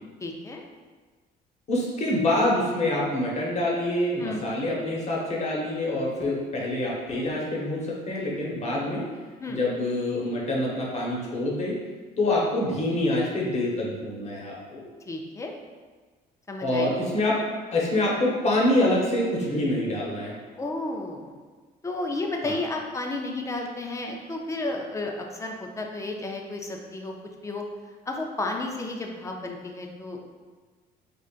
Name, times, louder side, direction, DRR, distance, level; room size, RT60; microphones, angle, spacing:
voice 1, 0.2-0.6 4.2-4.4 9.4-9.6 15.1-15.5 16.5-16.9 20.6-21.3 21.8-27.1 27.4-27.6 28.1-30.2, left 2 dB, 20° left, 1 dB, 0.5 m, -32 dB
voice 2, 1.7-9.0 9.5-11.8 12.2-14.8 16.6-17.4 17.7-20.4 22.4-22.5, left 1 dB, 40° left, -3 dB, 1.0 m, -26 dB
5.1 x 2.4 x 2.4 m, 1.4 s
cardioid pair, 110°, 17 cm